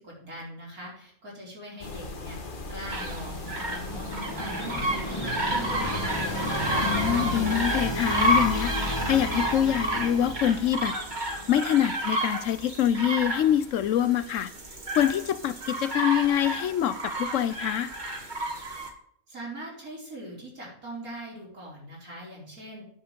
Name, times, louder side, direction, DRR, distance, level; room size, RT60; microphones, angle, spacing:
voice 1, 0.0-2.4 2.7-3.4 3.7-6.3 19.3-22.8, right 1 dB, 80° right, 5.3 m, -41 dB
sound 1, 1.8-7.2, left 3 dB, 40° left, 1.3 m, -38 dB
sound 2, 2.9-18.9, right 1 dB, 35° right, 1.7 m, -31 dB
sound 3, 3.0-11.9, left 1 dB, 20° left, 1.4 m, -33 dB
voice 2, 6.8-10.9 11.5-14.5 15.0-17.9, left 10 dB, 70° left, 0.9 m, -25 dB
9.4 x 7.0 x 5.2 m
omnidirectional pair, 1.5 m